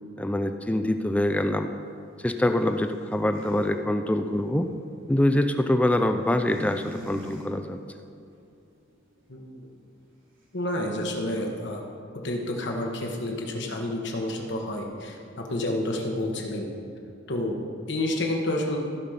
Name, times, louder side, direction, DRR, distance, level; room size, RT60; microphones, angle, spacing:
voice 1, 0.2-1.7 2.2-4.7 5.1-7.8, left 1 dB, 5° left, 7 dB, 0.4 m, -24 dB
sound 1, 0.8-3.7 4.1-5.4 6.3-7.5 7.7-8.3 8.7-9.0, equal, 70° right, 2.3 m, -44 dB
voice 2, 9.3-9.7 10.5-11.8 12.2-16.7 17.3-17.6 17.9-18.8, left 1 dB, 65° left, 1 dB, 1.4 m, -29 dB
15.0 x 5.2 x 5.7 m, 2.5 s
head